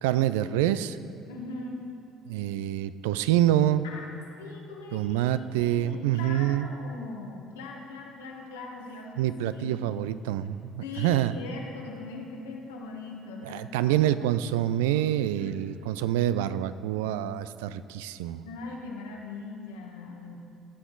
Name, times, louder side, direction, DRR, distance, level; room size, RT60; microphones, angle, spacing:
voice 1, 0.0-1.0 2.3-3.9 4.9-6.7 9.2-11.4 13.4-18.4, right 12 dB, 80° right, 14 dB, 0.3 m, -26 dB
voice 2, 1.3-1.8 3.8-4.0 4.4-5.3 5.6-10.0 10.8-14.0 15.3-15.7 18.4-20.3, left 3 dB, 90° left, -1 dB, 1.3 m, -41 dB
17.0 x 6.3 x 3.9 m, 2.5 s
hypercardioid pair, 60°, 0 cm